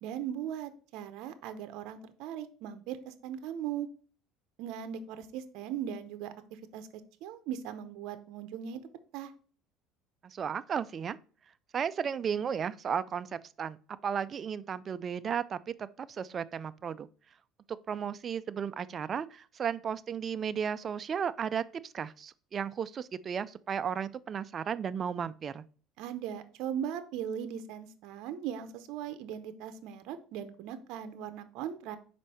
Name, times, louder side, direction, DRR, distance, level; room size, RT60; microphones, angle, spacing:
voice 1, 0.0-3.9 4.6-6.3 6.7-6.9 7.2-9.3 26.0-32.0, right 9 dB, 70° right, 0.7 m, -39 dB
voice 2, 10.2-11.2 11.7-13.8 14.0-17.1 17.9-25.6, right 7 dB, 35° right, 0.3 m, -34 dB
5.1 x 4.5 x 4.2 m
cardioid pair, 130°, 0 cm